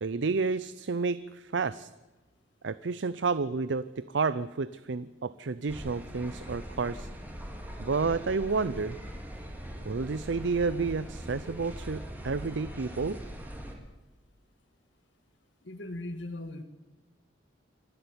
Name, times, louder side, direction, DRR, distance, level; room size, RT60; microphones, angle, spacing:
voice 1, 0.0-1.9 2.6-7.1 7.8-9.0 9.8-13.2, right 4 dB, 70° right, 16 dB, 0.6 m, -30 dB
sound 1, 5.7-13.7, equal, 10° right, 2.9 m, -41 dB
voice 2, 15.6-16.6, left 1 dB, 75° left, 8 dB, 1.7 m, -38 dB
26.0 x 11.5 x 9.7 m, 1.1 s
head